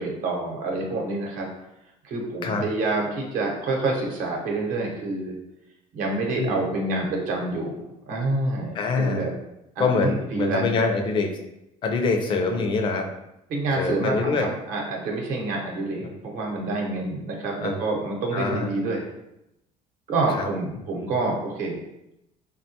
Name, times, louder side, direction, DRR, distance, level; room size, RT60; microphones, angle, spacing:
voice 1, 0.0-1.5 2.0-5.3 5.9-7.8 8.1-9.3 9.8-10.8 13.5-19.1 20.1-21.8, right 2 dB, 70° right, 0 dB, 0.8 m, -27 dB
voice 2, 8.7-9.3 9.8-11.4 11.8-13.1 13.8-14.5 17.6-17.8 18.3-18.7 20.3-20.5 21.0-21.1, left 4 dB, 35° left, 4 dB, 0.4 m, -24 dB
3.4 x 2.2 x 2.8 m, 0.87 s
cardioid pair, 140°, 15 cm